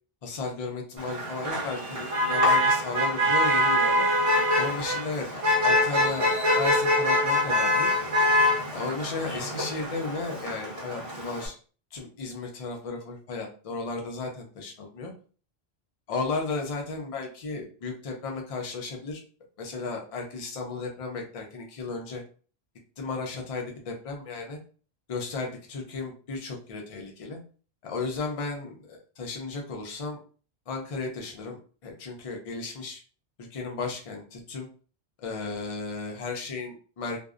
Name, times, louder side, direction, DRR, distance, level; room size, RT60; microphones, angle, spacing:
voice 1, 0.2-4.1 4.6-7.9 8.7-11.5 11.9-15.1 16.1-19.2 19.6-22.2 23.0-24.6 25.1-27.4 27.8-30.2 30.7-33.0 33.5-34.7 35.2-37.2, left 3 dB, 45° left, 1 dB, 0.5 m, -34 dB
Motor vehicle (road), 1.0-11.5, left 1 dB, 35° right, 0.8 m, -24 dB
2.6 x 2.0 x 2.4 m, 0.39 s
omnidirectional pair, 1.1 m